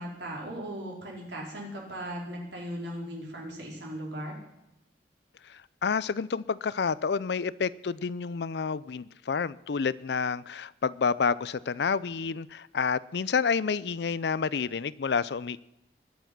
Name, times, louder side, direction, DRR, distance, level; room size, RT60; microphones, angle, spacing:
voice 1, 0.0-4.3, equal, 80° right, 4.7 m, -38 dB
voice 2, 5.5-15.6, left 5 dB, 70° left, 0.5 m, -29 dB
21.0 x 7.2 x 6.0 m
head